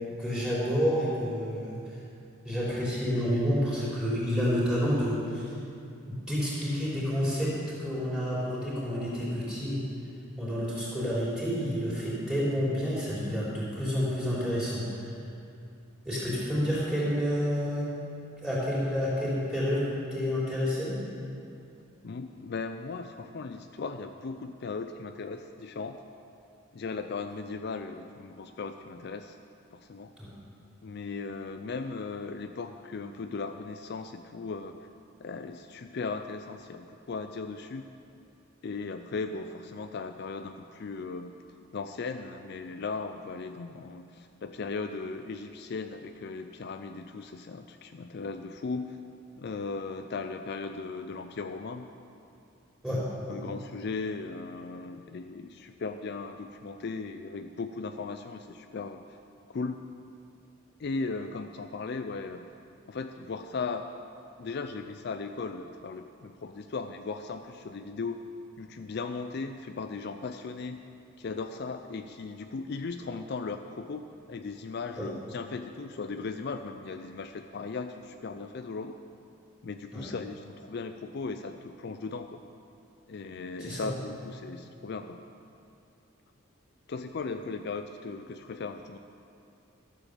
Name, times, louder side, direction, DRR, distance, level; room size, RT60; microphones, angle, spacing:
voice 1, 0.2-1.8 2.4-5.5 6.0-7.5 7.8-9.8 10.4-15.1 16.0-17.9 18.4-19.8 20.1-21.0 30.2-30.3 52.8-53.4 75.0-75.1 79.9-80.0 83.6-83.9, equal, 5° right, -8 dB, 3.6 m, -29 dB
voice 2, 22.0-26.0 26.7-29.4 29.7-30.1 30.8-34.8 35.2-37.8 38.6-41.3 41.7-49.0 49.4-51.9 52.9-59.0 59.5-59.8 60.8-62.5 62.9-63.9 64.4-68.3 68.6-70.8 71.2-78.9 79.6-82.4 83.1-85.2 86.9-89.0, left 4 dB, 50° left, 7 dB, 0.4 m, -37 dB
13.0 x 7.4 x 6.8 m, 2.6 s
head